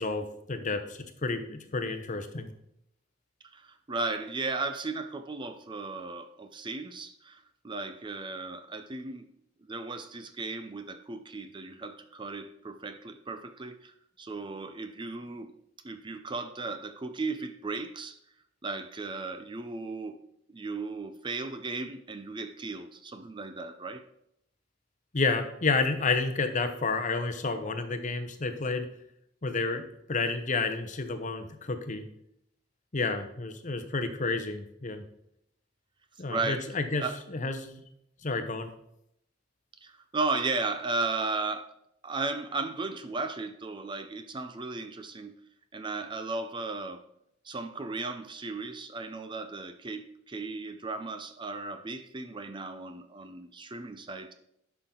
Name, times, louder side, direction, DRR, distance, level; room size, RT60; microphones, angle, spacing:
voice 1, 0.0-2.5 25.1-28.9 29.4-29.8 30.1-32.1 32.9-35.0 36.2-37.0 37.3-37.8 38.2-38.7, left 3 dB, 40° left, 8 dB, 0.9 m, -30 dB
voice 2, 3.4-9.3 9.6-15.5 15.8-18.2 18.6-20.2 20.5-24.0 36.3-36.7 37.0-37.2 39.8-41.7 42.0-45.4 45.7-47.0 47.4-54.3, right 3 dB, 25° right, 9 dB, 0.5 m, -35 dB
11.0 x 5.9 x 3.8 m, 0.76 s
head